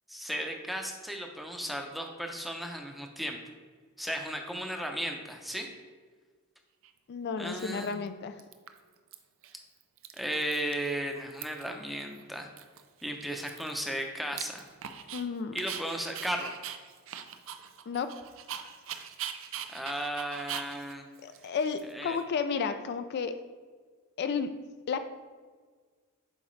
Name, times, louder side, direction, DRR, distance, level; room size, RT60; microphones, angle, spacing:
voice 1, 0.1-3.4 4.0-5.7 7.4-8.0 10.2-12.5 13.0-14.7 15.5-16.5 19.7-21.0 21.9-22.2, equal, ahead, 3 dB, 0.6 m, -35 dB
Dog, 6.8-6.9 7.6-8.1 8.4-9.1 9.4-9.6 9.8-10.9 11.1-11.8 12.1-12.2 12.6-15.2 15.6-22.2, right 9 dB, 65° right, 0.5 m, -42 dB
voice 2, 7.1-8.4 15.1-15.6 17.9-18.1 21.2-23.4 24.2-24.5 24.9-25.1, left 5 dB, 50° left, 10 dB, 0.3 m, -32 dB
7.8 x 4.7 x 3.2 m, 1.5 s
head